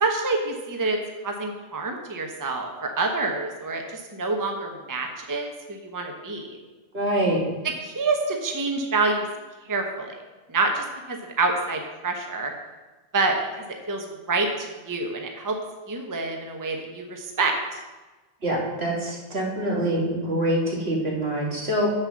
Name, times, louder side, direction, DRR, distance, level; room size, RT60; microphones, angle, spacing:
voice 1, 0.0-1.0 1.2-6.5 7.8-9.3 9.7-10.2 10.5-12.5 13.1-13.3 13.9-15.6 15.9-17.8, right 3 dB, 20° right, 3 dB, 0.8 m, -27 dB
voice 2, 6.9-7.4 18.4-21.9, right 1 dB, 70° right, -2 dB, 2.1 m, -25 dB
7.3 x 6.5 x 6.3 m, 1.2 s
omnidirectional pair, 1.1 m